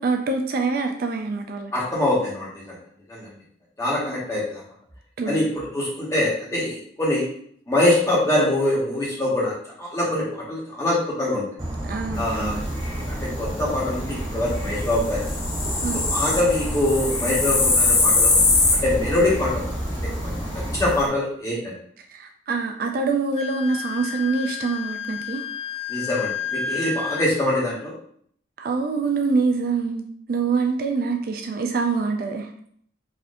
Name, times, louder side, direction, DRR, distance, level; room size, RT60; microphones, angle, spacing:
voice 1, 0.0-1.7 5.2-5.4 11.8-12.7 15.8-16.0 22.0-25.5 28.6-32.5, right 4 dB, 50° right, 5 dB, 0.3 m, -25 dB
voice 2, 1.7-2.6 3.1-3.3 3.8-4.6 5.3-7.3 7.7-11.4 12.1-12.6 13.1-15.2 16.1-18.3 18.8-19.7 19.9-20.3 20.7-21.7 25.9-27.9, left 1 dB, 15° left, -6 dB, 1.2 m, -24 dB
Insect / Frog, 11.6-20.8, right 1 dB, 25° right, 0.8 m, -31 dB
sound 1, 12.2-21.1, left 3 dB, 75° left, 1.1 m, -24 dB
Wind instrument woodwind instrument, 23.3-27.3, left 7 dB, 35° left, 0.3 m, -31 dB
4.1 x 2.8 x 2.5 m, 0.62 s
head